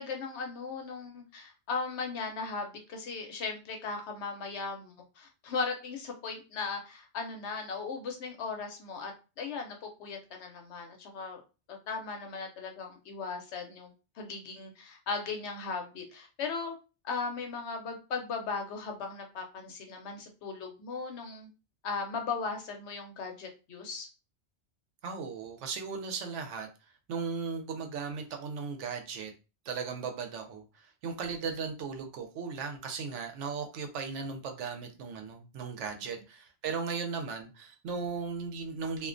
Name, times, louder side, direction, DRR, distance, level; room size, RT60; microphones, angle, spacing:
voice 1, 0.0-11.4 11.7-16.8 17.0-21.5 21.8-24.1, left 4 dB, 70° left, 3 dB, 0.9 m, -37 dB
voice 2, 25.0-26.7 27.1-29.3 29.7-39.1, right 5 dB, 80° right, 4 dB, 0.9 m, -37 dB
2.3 x 2.2 x 2.5 m, 0.31 s
omnidirectional pair, 1.2 m